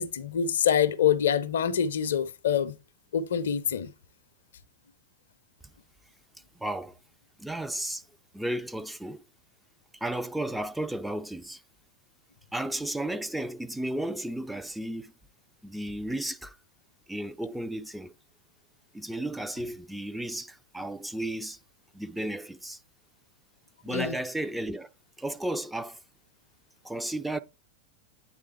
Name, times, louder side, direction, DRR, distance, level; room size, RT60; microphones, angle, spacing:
voice 1, 0.0-2.7 3.1-3.9 23.9-24.1, left 8 dB, 65° left, 0.5 m, -25 dB
voice 2, 6.6-7.0 7.4-8.0 8.3-9.2 10.0-11.6 12.5-15.1 15.6-16.6 17.1-18.1 18.9-21.6 21.9-22.8 23.8-24.9 25.2-26.0 26.8-27.4, right 1 dB, 5° right, 0.3 m, -33 dB
8.5 x 3.3 x 3.3 m
figure-of-eight pair, 90°, 0 cm